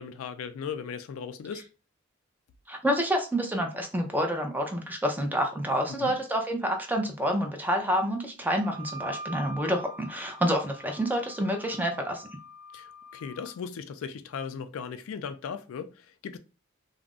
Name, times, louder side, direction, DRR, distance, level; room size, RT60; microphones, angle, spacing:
voice 1, 0.0-1.6 6.0-6.2 12.7-16.4, left 6 dB, 85° left, 0.3 m, -37 dB
voice 2, 2.7-12.3, equal, 10° right, 0.5 m, -28 dB
Wind instrument woodwind instrument, 8.6-13.6, right 1 dB, 75° right, 1.0 m, -44 dB
2.4 x 2.0 x 3.5 m
head